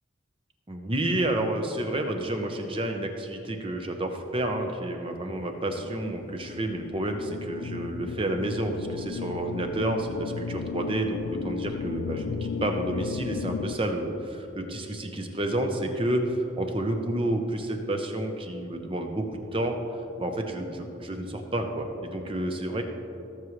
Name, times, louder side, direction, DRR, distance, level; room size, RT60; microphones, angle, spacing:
voice 1, 0.7-19.8 20.2-22.8, right 1 dB, 25° right, 4 dB, 0.8 m, -30 dB
sound 1, 5.4-13.8, left 5 dB, 75° left, 0.3 m, -35 dB
17.5 x 7.2 x 3.2 m, 2.8 s
head